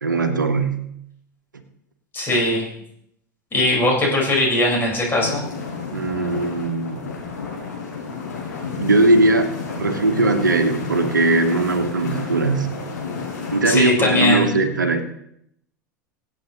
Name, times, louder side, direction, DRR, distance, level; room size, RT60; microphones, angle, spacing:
voice 1, 0.0-0.8 5.9-7.0 8.8-12.7 13.5-15.0, right 2 dB, 75° right, 8 dB, 1.3 m, -19 dB
voice 2, 2.1-2.7 3.5-5.4 13.6-14.5, left 1 dB, 20° left, -3 dB, 4.7 m, -19 dB
sound 1, 5.2-13.6, left 5 dB, 70° left, 4.8 m, -31 dB
24.5 x 8.3 x 3.0 m, 0.74 s
figure-of-eight pair, 85°, 10 cm